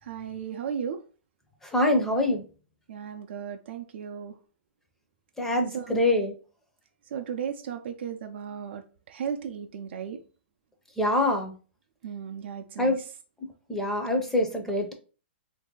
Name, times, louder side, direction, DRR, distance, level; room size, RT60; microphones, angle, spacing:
voice 1, 0.0-1.0 2.9-4.3 5.7-6.0 7.1-10.2 12.0-12.9, right 8 dB, 65° right, 0.5 m, -35 dB
voice 2, 1.7-2.4 5.4-6.3 11.0-11.5 12.8-13.0 13.7-14.9, left 1 dB, 5° left, 0.6 m, -24 dB
3.0 x 2.6 x 3.8 m
hypercardioid pair, 150°, 6 cm